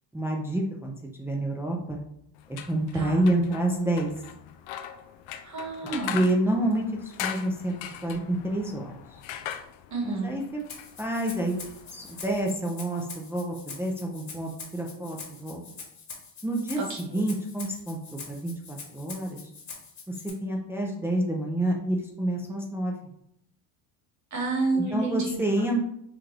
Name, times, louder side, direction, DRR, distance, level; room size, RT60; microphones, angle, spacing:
voice 1, 0.1-0.9 1.2-2.0 2.5-4.1 6.1-7.7 8.0-8.9 10.0-10.6 11.0-11.6 11.9-15.6 16.4-19.4 20.1-22.9 24.7-25.9, right 1 dB, 5° right, -1 dB, 0.6 m, -28 dB
sound 1, 2.4-12.5, left 10 dB, 75° left, 0.6 m, -41 dB
voice 2, 5.4-6.3 9.9-10.3 16.8-17.2 24.3-25.4, right 3 dB, 35° right, -1 dB, 1.7 m, -30 dB
Rattle (instrument), 10.7-20.3, left 5 dB, 40° left, 1.4 m, -44 dB
5.9 x 2.5 x 3.4 m, 0.74 s
cardioid pair, 115°, 47 cm